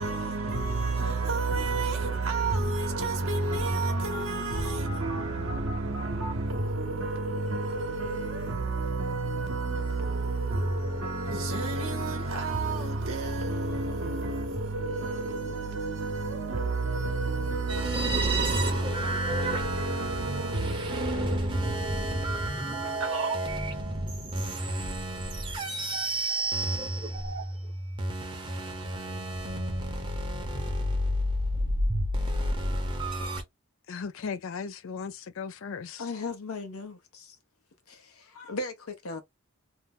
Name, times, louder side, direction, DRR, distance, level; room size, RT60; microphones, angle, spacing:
voice 1, 0.0-24.3, right 2 dB, 65° right, 0.9 m, -30 dB
sound 1, 17.7-33.4, right 1 dB, 20° right, 0.8 m, -31 dB
voice 2, 33.9-36.0, left 5 dB, 60° left, 0.4 m, -37 dB
voice 3, 36.0-37.4 37.9-39.2, left 3 dB, 80° left, 0.9 m, -37 dB
2.7 x 2.1 x 3.7 m
head